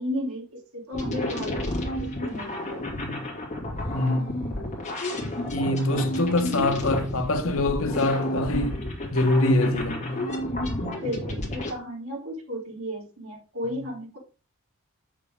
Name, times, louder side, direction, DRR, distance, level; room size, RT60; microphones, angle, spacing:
voice 1, 0.0-2.8 5.9-6.8 11.0-14.2, equal, 75° right, 3.4 m, -34 dB
sound 1, 0.9-11.7, left 1 dB, 35° left, 2.5 m, -31 dB
voice 2, 3.0-3.3 3.9-4.5 5.5-8.8 9.1-10.2, left 2 dB, 65° left, 1.1 m, -24 dB
8.0 x 6.6 x 3.6 m
head